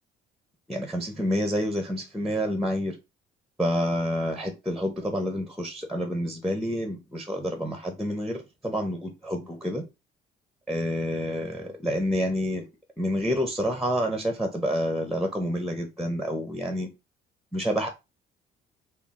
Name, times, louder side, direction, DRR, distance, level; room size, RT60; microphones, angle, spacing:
voice 1, 0.7-3.0 3.6-9.8 10.7-12.7 13.0-16.9 17.5-17.9, equal, ahead, 0.6 m, -28 dB
3.6 x 2.3 x 3.6 m
cardioid pair, 110°, 17 cm